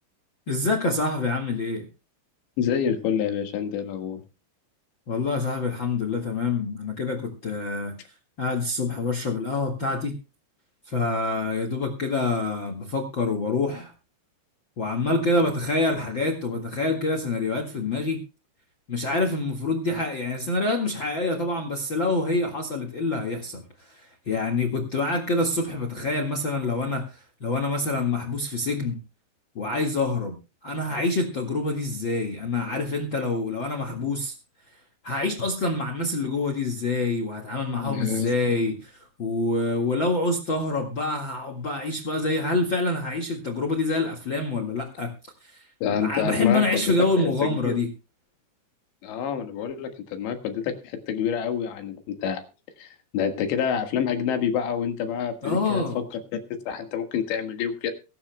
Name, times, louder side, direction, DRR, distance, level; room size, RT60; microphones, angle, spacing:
voice 1, 0.5-1.8 5.1-7.9 8.4-10.1 10.9-13.9 14.8-18.2 18.9-23.6 24.0-29.0 29.5-30.4 30.6-34.3 35.0-38.9 39.2-45.1 45.4-47.9 55.4-56.0, left 3 dB, 55° left, 6 dB, 1.3 m, -26 dB
voice 2, 2.6-4.2 37.8-38.6 45.8-47.7 49.0-52.4 52.8-56.1 56.7-57.9, left 8 dB, 75° left, 7 dB, 3.8 m, -28 dB
23.0 x 12.0 x 2.2 m, 0.31 s
omnidirectional pair, 5.3 m